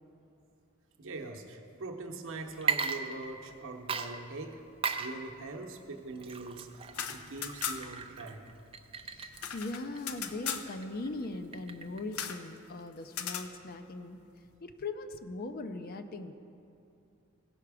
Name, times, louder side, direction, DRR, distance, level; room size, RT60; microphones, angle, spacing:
voice 1, 1.0-4.6 5.0-8.4, right 2 dB, 60° right, 3 dB, 0.9 m, -42 dB
Water / Liquid, 2.5-3.6 3.9-12.1, right 5 dB, 25° right, 0.4 m, -38 dB
sound 1, 6.8-8.1 8.3-8.4 8.7-10.7 12.1-12.4 13.1-13.5, left 8 dB, 85° left, 0.6 m, -38 dB
voice 2, 9.0-14.2 14.6-16.3, left 2 dB, 45° left, 8 dB, 0.5 m, -40 dB
16.5 x 5.8 x 4.8 m, 2.7 s
head